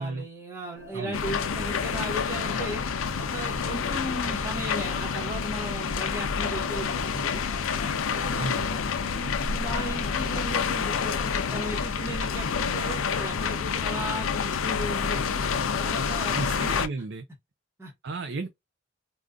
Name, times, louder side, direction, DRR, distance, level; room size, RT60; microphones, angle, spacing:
voice 1, 0.0-2.8 3.2-7.4 8.1-8.6 9.2-15.4 15.8-16.4 17.8-17.9, equal, 10° right, 1.0 m, -36 dB
sound 1, 0.7-11.7, left 1 dB, 35° left, 0.8 m, -43 dB
sound 2, 1.1-16.9, left 6 dB, 85° left, 0.5 m, -28 dB
voice 2, 8.3-8.8 16.4-17.3 18.0-18.5, right 3 dB, 55° right, 0.4 m, -33 dB
3.6 x 2.4 x 2.5 m
head